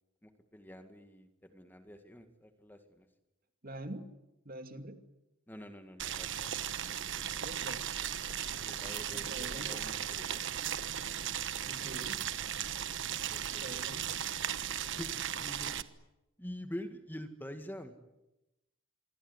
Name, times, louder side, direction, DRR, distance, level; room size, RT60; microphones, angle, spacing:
voice 1, 0.2-3.1 5.5-6.5 8.7-10.4 13.3-13.8 14.9-15.8 16.4-18.0, equal, 10° left, 7 dB, 2.0 m, -47 dB
voice 2, 3.6-4.0 4.4-5.0 7.4-7.8 9.1-9.8 11.6-12.2 13.5-14.2, right 1 dB, 45° right, 7 dB, 2.7 m, -45 dB
Boiling, 6.0-15.8, right 9 dB, 60° right, 1.2 m, -37 dB
26.5 x 22.5 x 9.9 m, 0.95 s
head